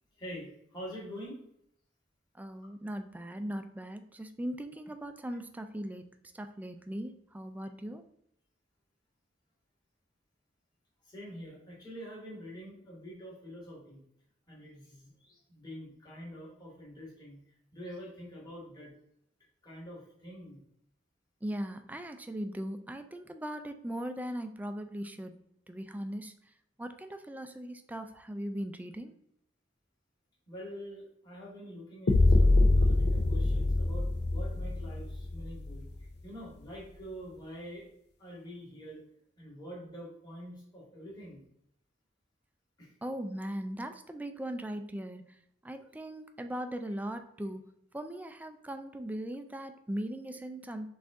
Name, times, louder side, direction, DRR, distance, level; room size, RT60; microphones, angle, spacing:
voice 1, 0.2-1.4 11.1-14.0 14.5-17.4 17.7-18.9 19.6-20.6 30.5-35.9 36.2-37.8 38.2-39.0 39.4-41.4 42.8-42.9, equal, 25° left, -6 dB, 1.9 m, -46 dB
voice 2, 2.4-6.1 6.3-8.0 21.4-25.4 25.7-26.3 26.8-29.1 43.0-45.4 45.6-47.7 47.9-50.9, right 1 dB, 10° right, 7 dB, 0.3 m, -39 dB
sound 1, 32.1-36.1, left 2 dB, 65° left, 0.5 m, -25 dB
5.8 x 2.5 x 3.6 m, 0.74 s
head